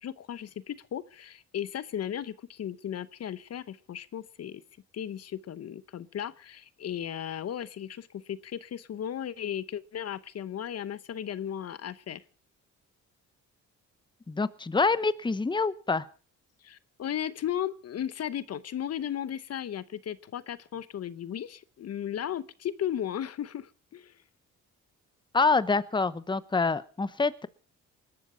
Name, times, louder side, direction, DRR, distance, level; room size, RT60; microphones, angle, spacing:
voice 1, 0.0-4.6 4.9-12.2 16.6-24.1, left 10 dB, 55° left, 16 dB, 0.9 m, -35 dB
voice 2, 14.3-16.0 25.3-27.5, left 4 dB, 15° left, 16 dB, 0.9 m, -26 dB
20.5 x 12.5 x 5.6 m, 0.40 s
cardioid pair, 90°, 30 cm